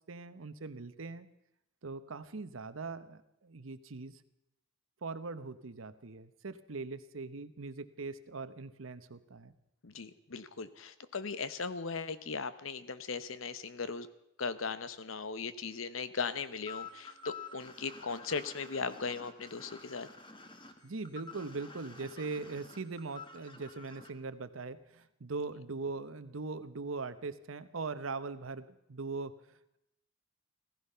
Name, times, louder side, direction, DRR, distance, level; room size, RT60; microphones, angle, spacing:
voice 1, 0.1-1.3 1.8-4.2 5.0-9.5 20.8-29.3, right 3 dB, 90° right, 13 dB, 0.9 m, -41 dB
voice 2, 9.8-14.1 14.4-20.1, left 5 dB, 90° left, 14 dB, 0.9 m, -38 dB
sound 1, 16.7-24.1, left 5 dB, 25° left, 1.3 m, -49 dB
16.5 x 15.0 x 5.6 m, 0.83 s
head